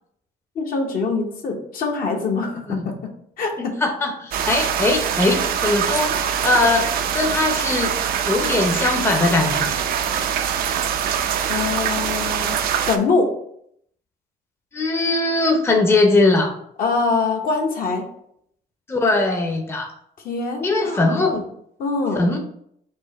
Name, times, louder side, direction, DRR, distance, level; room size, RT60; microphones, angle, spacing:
voice 1, 0.5-3.0 3.4-3.8 11.5-12.6 12.9-13.3 16.8-18.1 20.2-21.4 21.8-22.3, left 4 dB, 60° left, 2 dB, 1.0 m, -24 dB
voice 2, 3.8-6.1 6.4-6.9 7.1-7.9 8.2-9.7 14.7-16.5 18.9-19.9 20.6-21.4 22.1-22.4, left 2 dB, 15° left, 2 dB, 0.7 m, -20 dB
sound 1, 4.3-13.0, right 8 dB, 60° right, 0.5 m, -23 dB
4.6 x 2.7 x 4.1 m, 0.69 s
cardioid pair, 110°, 17 cm